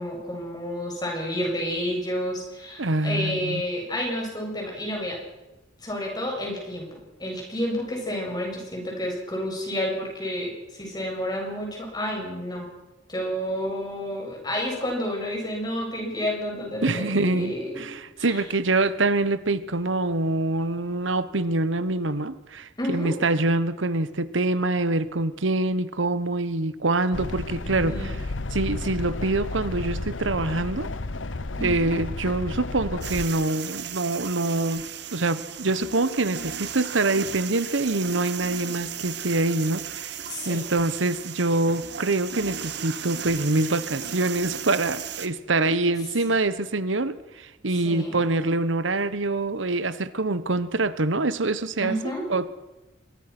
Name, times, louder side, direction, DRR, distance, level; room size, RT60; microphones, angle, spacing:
voice 1, 0.0-5.2 5.8-12.7 13.1-17.9 18.2-18.4 22.8-23.2 27.8-28.1 31.6-31.9 40.3-40.7 46.2-46.3 47.8-48.1 51.8-52.3, equal, 20° left, 1 dB, 7.6 m, -30 dB
voice 2, 2.8-3.6 16.8-28.2 28.5-30.9 31.6-34.8 35.1-40.2 40.5-52.0 52.3-52.5, right 2 dB, 80° right, 14 dB, 1.2 m, -25 dB
sound 1, 27.1-33.3, left 2 dB, 80° left, 1.1 m, -32 dB
sound 2, 33.0-45.3, right 8 dB, 60° right, 1.7 m, -36 dB
26.0 x 22.5 x 6.1 m, 1.0 s
head